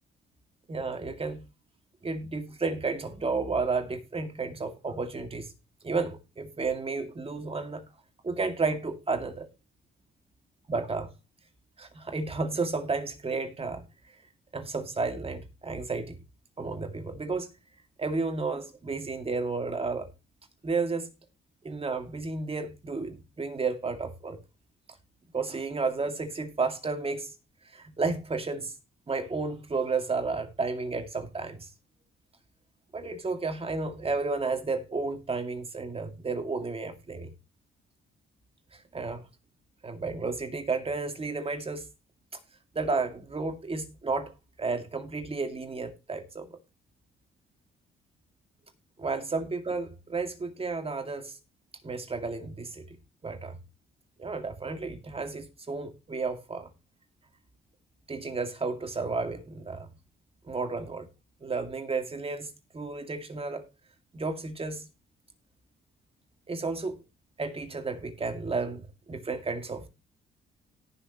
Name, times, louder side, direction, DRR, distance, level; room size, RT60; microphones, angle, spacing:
voice 1, 0.7-1.4 2.0-5.5 5.8-7.8 8.2-9.5 10.7-11.1 11.8-13.9 14.5-16.2 16.6-17.5 18.0-20.1 20.6-21.1 21.6-24.4 25.3-27.3 27.7-28.7 29.1-31.7 32.9-37.3 38.7-39.2 39.8-41.9 42.7-46.5 49.0-51.3 51.8-52.9 53.2-53.6 54.2-56.7 58.1-59.9 60.5-61.1 61.4-63.7 64.1-64.9 66.5-67.0 67.4-69.9, right 4 dB, 30° right, 2.2 m, -32 dB
18.0 x 6.5 x 3.0 m
cardioid pair, 90°, 20 cm